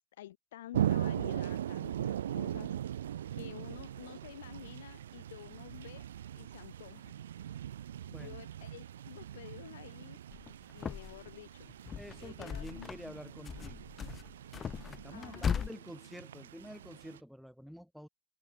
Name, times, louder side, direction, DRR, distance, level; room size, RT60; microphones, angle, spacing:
voice 1, 0.2-2.8 3.3-6.1 6.4-7.1 8.1-10.2 10.7-11.8 12.2-13.4 15.1-15.7 16.1-16.2, left 13 dB, 70° left, 6.0 m, -50 dB
sound 1, 0.7-17.2, right 10 dB, 75° right, 2.2 m, -40 dB
sound 2, 10.3-11.3 11.7-13.1 13.4-15.7, left 7 dB, 25° left, 0.8 m, -38 dB
voice 2, 12.0-13.9 14.9-18.1, equal, ahead, 2.8 m, -48 dB
hypercardioid pair, 100°, 0 cm